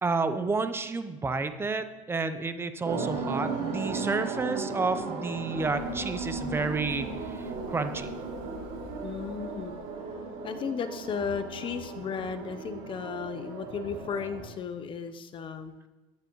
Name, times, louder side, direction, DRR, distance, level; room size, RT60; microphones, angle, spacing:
voice 1, 0.0-7.1 7.7-8.1, right 3 dB, 15° right, 10 dB, 0.7 m, -30 dB
sound 1, 2.8-14.5, right 4 dB, 60° right, 2.9 m, -36 dB
Run, 5.5-10.3, equal, 75° right, 2.6 m, -46 dB
voice 2, 9.0-9.7 10.4-15.7, left 6 dB, 30° left, 9 dB, 0.8 m, -35 dB
15.0 x 9.6 x 3.1 m, 1.1 s
supercardioid pair, 125°, 16 cm